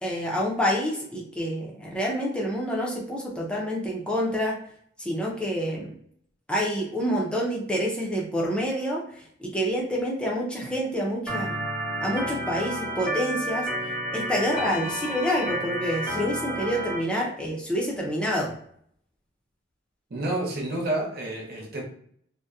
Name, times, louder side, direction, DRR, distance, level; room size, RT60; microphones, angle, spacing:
voice 1, 0.0-4.6 5.0-5.9 6.5-11.6 12.0-13.7 14.1-18.5, equal, 5° left, -3 dB, 0.4 m, -27 dB
Organ, 11.3-17.0, right 1 dB, 10° right, 0.8 m, -31 dB
voice 2, 20.1-21.8, right 1 dB, 55° right, -1 dB, 0.6 m, -29 dB
2.6 x 2.1 x 2.3 m, 0.65 s
head